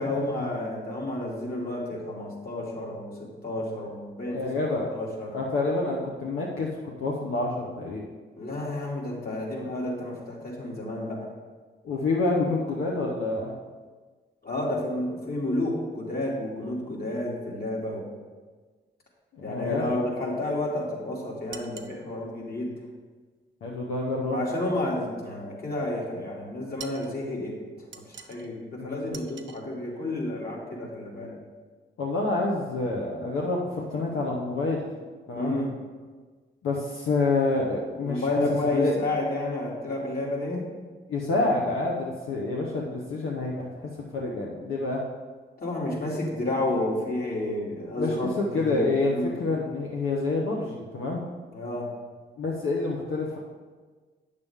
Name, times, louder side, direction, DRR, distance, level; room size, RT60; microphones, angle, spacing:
voice 1, 0.0-5.4 8.4-11.3 14.4-18.1 19.4-22.7 24.2-31.4 35.4-35.7 38.0-40.7 45.6-49.3 51.5-51.9, left 1 dB, 50° left, -3 dB, 2.4 m, -31 dB
voice 2, 4.3-4.9 5.3-8.0 11.8-13.5 19.3-20.0 23.6-24.4 28.8-29.1 32.0-34.9 35.3-35.6 36.6-38.2 38.7-38.9 41.1-45.0 48.0-51.2 52.4-53.4, left 3 dB, 85° left, -2 dB, 0.9 m, -28 dB
sound 1, 21.5-22.0 26.8-27.1 27.9-28.5 29.1-29.6, right 7 dB, 65° right, 0.7 m, -43 dB
8.4 x 6.7 x 3.6 m, 1.4 s
supercardioid pair, 50°, 20 cm